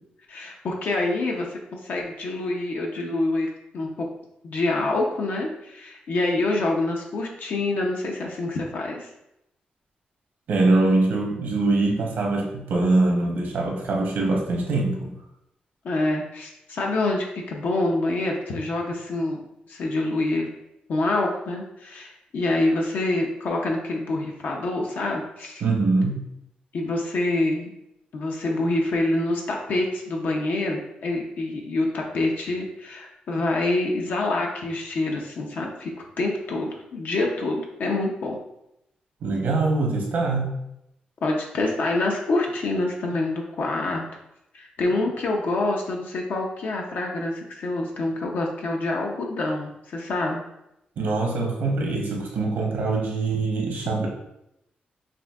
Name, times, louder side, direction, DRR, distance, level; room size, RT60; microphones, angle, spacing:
voice 1, 0.3-3.5 3.7-3.9 4.4-9.1 15.8-19.4 19.7-20.5 20.9-25.6 26.7-27.7 28.1-35.9 36.2-38.4 41.2-44.0 44.5-50.4, left 2 dB, 75° left, 0 dB, 0.5 m, -26 dB
voice 2, 10.5-15.1 25.6-26.2 39.2-40.5 51.0-54.1, right 3 dB, 85° right, 0 dB, 0.8 m, -23 dB
5.8 x 2.6 x 2.3 m, 0.84 s
wide cardioid pair, 115°, 3 cm